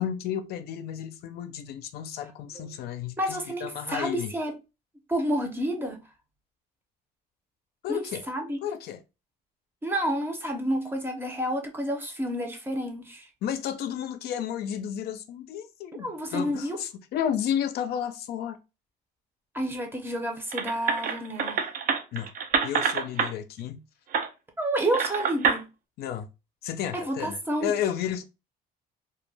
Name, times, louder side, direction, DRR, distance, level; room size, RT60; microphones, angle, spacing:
voice 1, 0.0-4.3 7.8-8.2 8.6-9.0 13.4-18.6 22.1-22.3 22.6-23.8 26.0-26.3 26.6-28.2, left 9 dB, 70° left, 0.4 m, -32 dB
voice 2, 3.2-4.5 5.1-6.0 7.9-8.6 9.8-13.3 16.0-16.8 19.5-21.6 24.6-25.7 27.1-27.7, right 1 dB, 15° right, 0.6 m, -29 dB
sound 1, 20.5-23.3 24.1-24.3 24.9-25.6, right 6 dB, 55° right, 0.5 m, -26 dB
2.2 x 2.1 x 3.1 m
cardioid pair, 110°, 17 cm